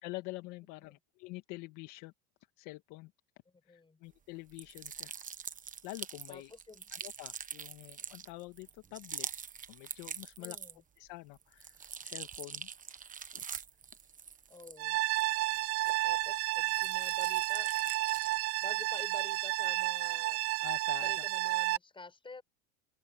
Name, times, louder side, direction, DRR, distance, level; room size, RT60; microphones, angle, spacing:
voice 1, 0.0-2.1 2.6-3.1 3.7-5.1 5.8-6.5 6.9-9.3 9.7-10.6 11.0-12.7 13.3-13.4 20.6-21.2, left 21 dB, 65° left, 1.8 m, -46 dB
voice 2, 3.7-4.0 6.3-7.0 10.4-10.8 14.5-15.0 16.0-17.7 18.6-20.5 21.0-22.4, left 4 dB, 15° left, 7.5 m, -50 dB
sound 1, 4.5-11.0 11.3-16.2 16.6-18.5, right 7 dB, 25° right, 1.2 m, -44 dB
sound 2, 14.8-21.8, right 18 dB, 45° right, 0.6 m, -31 dB
open air
supercardioid pair, 115°, 33 cm